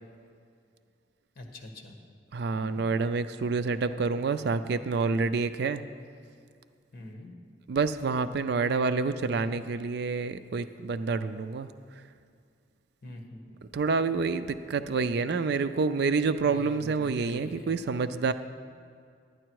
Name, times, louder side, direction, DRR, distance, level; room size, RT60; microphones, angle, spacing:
voice 1, 1.3-1.9 2.5-2.8 6.9-7.3 13.0-13.6 16.4-17.7, left 1 dB, 50° left, 2 dB, 1.4 m, -44 dB
voice 2, 2.3-5.8 7.7-11.7 13.7-18.3, right 4 dB, 60° right, 12 dB, 0.4 m, -28 dB
11.5 x 9.9 x 4.7 m, 2.2 s
head